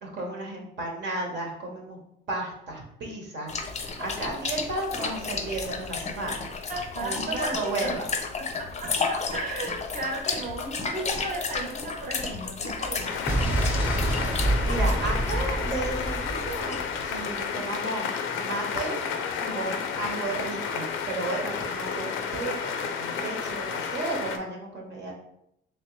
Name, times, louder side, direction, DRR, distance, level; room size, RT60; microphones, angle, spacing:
voice 1, 0.0-2.0 2.3-6.4 7.0-8.1 14.6-19.0 19.5-25.1, right 2 dB, 65° right, 0 dB, 1.1 m, -33 dB
sound 1, 3.5-17.0, left 4 dB, 35° left, 0.5 m, -33 dB
voice 2, 6.7-8.0 8.4-13.3 19.4-19.7, right 2 dB, 40° right, 0 dB, 1.0 m, -35 dB
sound 2, 13.0-24.4, left 6 dB, 85° left, 0.5 m, -31 dB
Explosion, 13.3-17.3, right 1 dB, 10° right, 0.8 m, -27 dB
3.4 x 3.1 x 3.1 m, 0.77 s
cardioid pair, 90°, 20 cm